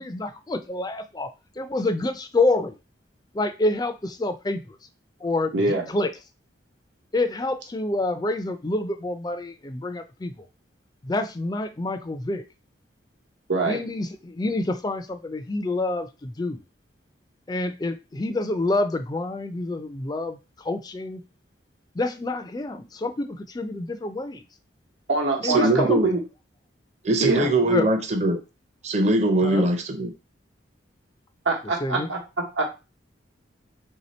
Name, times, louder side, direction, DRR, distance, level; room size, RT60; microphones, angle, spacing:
voice 1, 0.0-2.8 3.3-4.8 5.2-6.1 7.1-10.5 11.0-12.4 13.7-16.6 17.5-21.2 21.9-24.4 25.4-26.0 27.6-27.9 29.4-29.7 31.8-32.1, left 2 dB, 20° left, 0.3 m, -27 dB
voice 2, 5.5-5.9 13.5-13.8 25.1-26.2 27.2-27.5 31.4-32.2 32.5-32.8, right 3 dB, 80° right, 1.0 m, -24 dB
voice 3, 25.4-26.1 27.0-28.4 28.8-30.1, right 2 dB, 35° right, 0.6 m, -21 dB
3.4 x 2.8 x 4.2 m
head